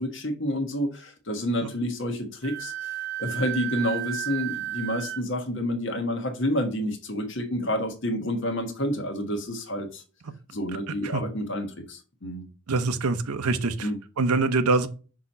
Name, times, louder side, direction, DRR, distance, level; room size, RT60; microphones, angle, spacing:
voice 1, 0.0-2.7 3.2-10.0 10.5-12.5 13.8-14.0, equal, 55° left, 1.3 m, -29 dB
Wind instrument woodwind instrument, 2.4-5.2, right 13 dB, 50° right, 0.7 m, -33 dB
voice 2, 12.7-13.9 14.2-14.9, right 3 dB, 85° right, 0.7 m, -24 dB
6.0 x 2.9 x 5.4 m
head